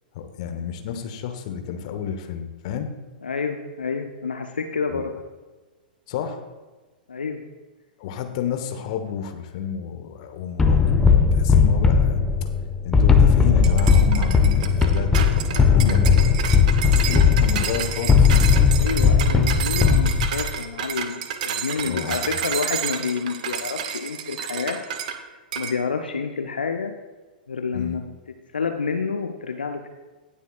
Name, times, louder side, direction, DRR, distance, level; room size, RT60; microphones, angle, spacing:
voice 1, 0.1-2.9 4.9-5.0 6.1-6.4 8.0-12.2 12.8-16.2 16.7-18.4 21.8-22.4 27.7-28.0, left 8 dB, 45° left, 7 dB, 1.2 m, -30 dB
voice 2, 3.2-5.1 7.1-7.4 18.7-24.8 25.6-26.9 27.5-28.0 28.5-29.9, left 5 dB, 75° left, 5 dB, 0.7 m, -28 dB
sound 1, 10.6-20.5, left 6 dB, 10° left, 0.8 m, -17 dB
sound 2, 13.6-25.2 25.5-25.8, right 8 dB, 50° right, 1.0 m, -30 dB
18.5 x 7.0 x 2.4 m, 1.3 s
figure-of-eight pair, 100°, 5 cm